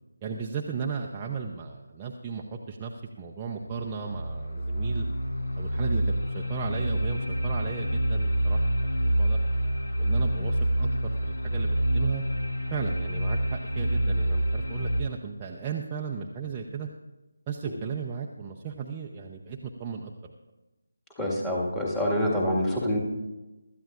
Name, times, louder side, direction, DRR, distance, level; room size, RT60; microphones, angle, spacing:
voice 1, 0.2-2.9 3.2-5.1 5.6-6.0 6.3-8.6 9.0-9.4 10.0-12.2 12.7-16.9 17.5-20.3, right 6 dB, 15° right, -1 dB, 0.7 m, -35 dB
sound 1, 3.7-15.0, right 1 dB, 60° left, 1.9 m, -27 dB
voice 2, 21.2-23.0, left 1 dB, 5° left, -3 dB, 1.9 m, -26 dB
24.5 x 13.5 x 2.5 m, 1.1 s
figure-of-eight pair, 160°, 0 cm